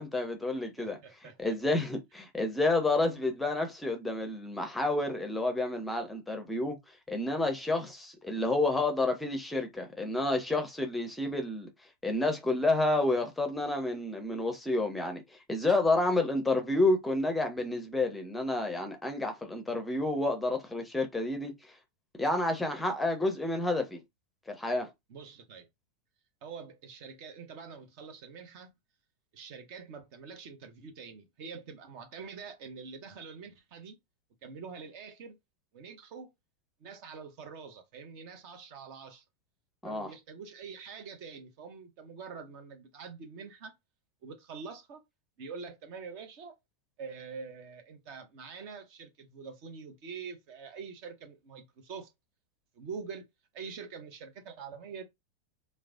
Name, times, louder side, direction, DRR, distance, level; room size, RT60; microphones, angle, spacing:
voice 1, 0.0-6.8 7.1-11.7 12.0-21.5 22.2-24.0 24.5-24.9 39.8-40.1, left 2 dB, 5° left, 0.7 m, -30 dB
voice 2, 0.8-1.6 25.1-25.7 26.4-28.7 29.3-34.0 34.4-35.4 35.7-36.3 36.8-39.2 39.8-43.7 44.2-45.0 45.4-46.6 47.0-52.1 52.7-53.3 53.5-55.0, right 5 dB, 45° right, 0.7 m, -45 dB
3.1 x 2.0 x 2.4 m
figure-of-eight pair, 90°, 0 cm